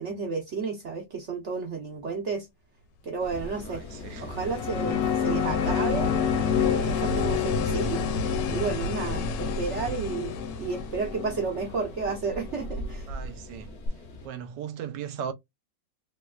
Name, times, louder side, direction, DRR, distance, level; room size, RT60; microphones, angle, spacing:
voice 1, 0.0-2.5 3.0-3.8 4.2-6.1 6.7-8.0 8.5-10.3 10.6-13.1, right 4 dB, 60° right, 0.8 m, -32 dB
sound 1, 3.2-11.7 13.9-14.0, left 2 dB, 90° left, 1.3 m, -34 dB
sound 2, 3.2-14.3, left 1 dB, 45° left, 1.0 m, -40 dB
voice 2, 3.6-4.3 13.1-13.8 14.2-15.3, right 8 dB, 85° right, 1.3 m, -37 dB
sound 3, 4.3-13.0, left 9 dB, 75° left, 1.3 m, -29 dB
3.1 x 3.0 x 2.2 m
omnidirectional pair, 1.9 m